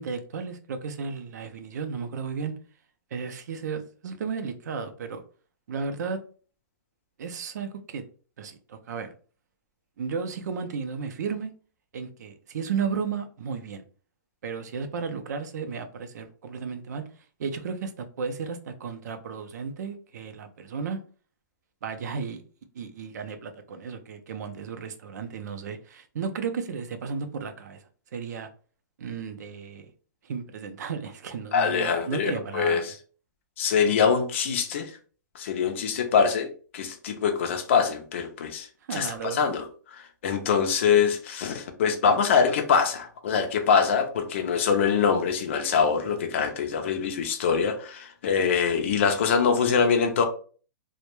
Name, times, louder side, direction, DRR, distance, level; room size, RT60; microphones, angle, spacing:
voice 1, 0.0-2.6 3.1-5.2 5.7-6.2 7.2-8.0 8.4-9.1 10.0-11.5 11.9-13.8 14.4-17.1 17.4-21.0 21.8-22.4 22.7-27.8 28.1-28.5 29.0-29.9 30.2-32.9 38.9-39.4, right 5 dB, 55° right, 0.4 m, -34 dB
voice 2, 31.5-32.9 33.6-34.9 35.4-36.5 36.7-39.7 40.2-50.2, left 6 dB, 40° left, 0.3 m, -24 dB
2.1 x 2.0 x 2.9 m
hypercardioid pair, 180°, 11 cm